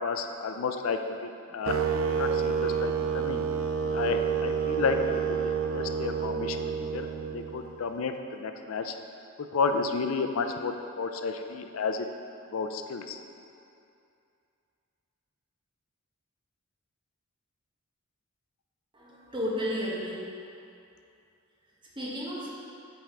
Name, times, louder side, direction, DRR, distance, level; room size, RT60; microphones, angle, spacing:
voice 1, 0.0-1.8 2.2-3.4 3.9-8.9 9.4-12.0 12.5-13.2, left 4 dB, 70° left, 6 dB, 0.4 m, -32 dB
sound 1, 1.7-7.7, right 6 dB, 65° right, 0.4 m, -29 dB
voice 2, 18.9-20.3 21.9-22.5, equal, 25° right, -7 dB, 1.4 m, -33 dB
8.8 x 3.5 x 4.5 m, 2.5 s
head